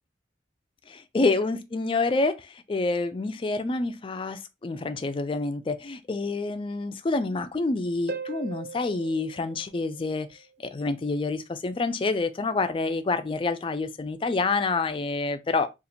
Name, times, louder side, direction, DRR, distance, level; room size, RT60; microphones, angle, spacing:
voice 1, 0.9-10.3 10.6-15.7, left 3 dB, 30° left, 0.3 m, -27 dB
Harp, 8.1-10.6 14.1-14.2, right 4 dB, 55° right, 0.4 m, -39 dB
2.8 x 2.5 x 4.0 m
head